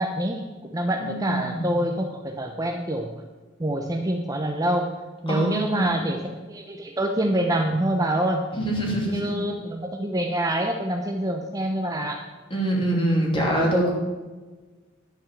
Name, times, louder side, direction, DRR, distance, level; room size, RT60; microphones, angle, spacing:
voice 1, 0.0-3.1 3.6-4.9 5.2-6.2 6.5-8.5 9.0-12.2, right 1 dB, 20° right, 3 dB, 0.7 m, -26 dB
voice 2, 1.0-1.8 5.3-6.0 8.5-9.4 12.5-13.9, right 1 dB, 25° left, -2 dB, 2.7 m, -25 dB
10.5 x 6.1 x 7.3 m, 1.3 s
head